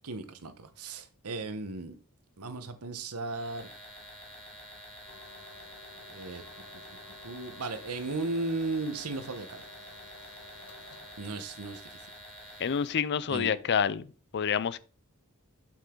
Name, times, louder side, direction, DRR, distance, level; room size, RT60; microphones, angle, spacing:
voice 1, 0.0-1.9 2.4-3.7 6.1-6.8 7.2-9.6 11.2-12.0 12.4-12.6 13.3-13.5, right 3 dB, 80° right, 1.1 m, -36 dB
sound 1, 3.2-13.1, equal, 5° left, 2.9 m, -49 dB
sound 2, 5.0-11.2, left 3 dB, 75° left, 1.5 m, -54 dB
voice 2, 12.6-14.1 14.3-14.8, left 7 dB, 50° left, 0.4 m, -28 dB
7.5 x 5.7 x 3.8 m
head